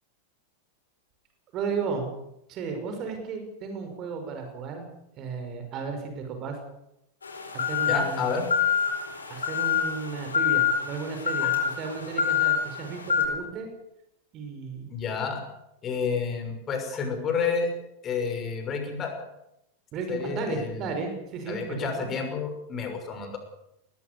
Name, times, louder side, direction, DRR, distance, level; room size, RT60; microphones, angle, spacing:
voice 1, 1.5-2.1 2.5-4.9 5.2-6.6 7.5-8.3 9.3-13.7 14.3-14.9 19.9-22.1, right 5 dB, 35° right, 5 dB, 5.8 m, -34 dB
sound 1, 7.2-13.3, left 8 dB, 75° left, 4.4 m, -26 dB
voice 2, 7.9-8.5 11.4-11.5 14.9-15.4 15.8-17.7 18.0-19.1 20.1-20.9 21.5-23.4, left 5 dB, 25° left, 5 dB, 6.2 m, -30 dB
21.5 x 20.0 x 7.0 m, 0.81 s
figure-of-eight pair, 90°, 0 cm